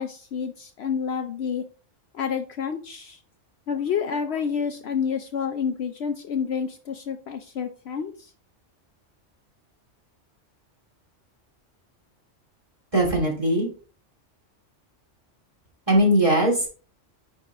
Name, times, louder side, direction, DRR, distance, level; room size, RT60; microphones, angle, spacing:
voice 1, 0.0-1.6 2.1-3.2 3.7-8.3, left 7 dB, 65° left, 7 dB, 0.8 m, -29 dB
voice 2, 12.9-13.7 15.9-16.7, right 1 dB, 25° right, -3 dB, 2.9 m, -20 dB
9.8 x 4.0 x 3.5 m, 0.39 s
omnidirectional pair, 1.3 m